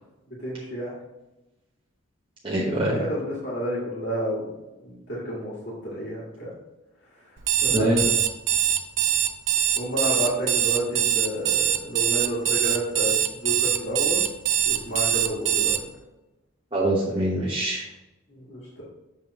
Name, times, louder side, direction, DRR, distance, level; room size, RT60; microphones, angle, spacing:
voice 1, 0.4-0.9 3.0-4.4 4.8-5.5 5.8-6.5 7.6-8.1 9.8-13.1 13.4-14.2 14.7-15.8 18.3-18.8, equal, 55° left, -8 dB, 2.0 m, -30 dB
voice 2, 2.4-3.0 7.7-8.0 16.7-17.9, right 1 dB, 25° right, -5 dB, 1.0 m, -24 dB
Alarm, 7.4-15.8, right 11 dB, 65° right, 0.6 m, -23 dB
7.4 x 3.6 x 4.7 m, 0.99 s
head